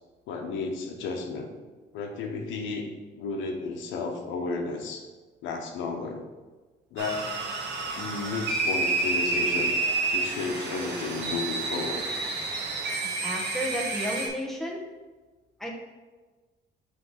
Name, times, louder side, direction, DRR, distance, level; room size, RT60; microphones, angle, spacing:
voice 1, 0.3-1.5 1.9-2.9 3.2-5.1 5.4-6.2 6.9-7.3 8.0-9.8 10.1-12.1, left 4 dB, 85° left, 3 dB, 0.9 m, -33 dB
sound 1, 7.0-14.3, right 3 dB, 65° right, 1.5 m, -29 dB
voice 2, 13.0-14.8 15.6-15.7, equal, ahead, -2 dB, 1.3 m, -32 dB
5.9 x 3.3 x 5.6 m, 1.2 s
cardioid pair, 95°, 19 cm